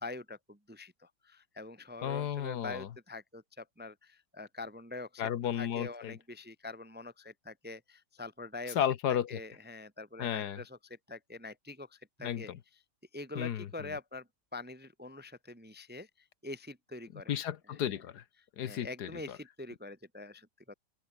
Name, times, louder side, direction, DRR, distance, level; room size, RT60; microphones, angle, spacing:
voice 1, 0.0-5.3 5.5-8.8 9.1-12.5 13.1-16.1 16.4-17.4 18.6-20.7, left 2 dB, 10° right, 0.7 m, -45 dB
voice 2, 2.0-2.9 5.2-6.2 8.7-9.4 10.2-10.6 12.2-12.6 13.3-13.9 17.3-18.2 18.6-19.4, left 10 dB, 75° left, 1.5 m, -33 dB
open air
omnidirectional pair, 1.8 m